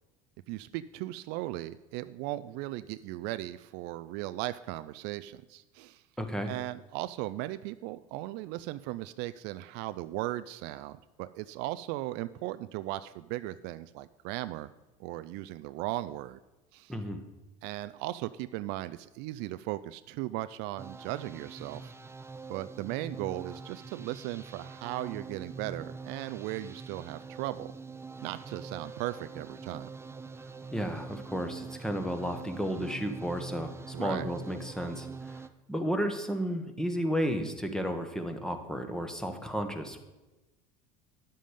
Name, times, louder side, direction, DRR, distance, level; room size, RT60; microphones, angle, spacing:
voice 1, 0.5-6.0 6.5-14.7 15.0-16.4 16.7-16.9 17.6-21.9 22.5-27.7 28.2-29.9 33.9-34.3, right 16 dB, 65° right, 13 dB, 0.4 m, -37 dB
voice 2, 6.2-6.5 16.9-17.2 30.7-40.0, equal, 5° left, 6 dB, 1.4 m, -33 dB
sound 1, 20.8-35.5, right 4 dB, 15° right, 0.5 m, -44 dB
10.0 x 7.6 x 5.2 m, 1.1 s
hypercardioid pair, 80°, 19 cm